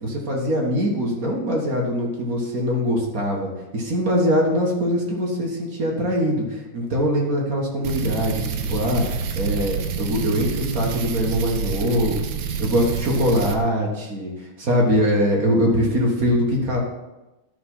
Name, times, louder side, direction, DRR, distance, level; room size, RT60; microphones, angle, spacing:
voice 1, 0.0-9.0 9.4-14.3 14.6-16.8, equal, 45° right, -1 dB, 1.8 m, -22 dB
sound 1, 7.8-13.6, right 6 dB, 65° right, 1.4 m, -27 dB
11.5 x 4.5 x 5.5 m, 1.1 s
omnidirectional pair, 2.4 m